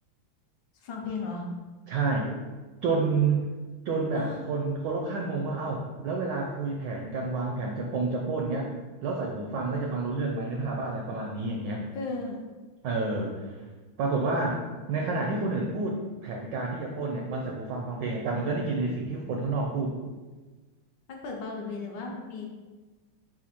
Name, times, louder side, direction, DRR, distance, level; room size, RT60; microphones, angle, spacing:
voice 1, 0.8-1.4 4.1-4.4 11.9-12.4 21.1-22.5, left 3 dB, 70° left, 0 dB, 1.2 m, -35 dB
voice 2, 1.9-2.3 2.8-3.5 3.8-8.7 9.0-11.9 12.8-13.4 14.0-19.9, right 3 dB, 75° right, 0 dB, 1.0 m, -29 dB
4.3 x 2.5 x 4.1 m, 1.3 s
omnidirectional pair, 2.4 m